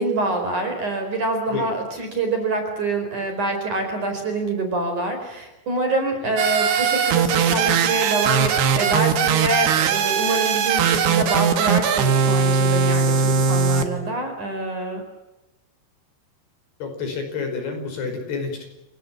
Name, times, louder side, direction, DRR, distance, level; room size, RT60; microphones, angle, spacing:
voice 1, 0.0-15.0, right 2 dB, 40° right, 5 dB, 5.7 m, -25 dB
sound 1, 6.4-13.8, right 6 dB, 60° right, 3.4 m, -20 dB
voice 2, 16.8-18.7, left 5 dB, 55° left, 5 dB, 7.0 m, -29 dB
29.5 x 18.5 x 7.5 m, 0.97 s
omnidirectional pair, 5.8 m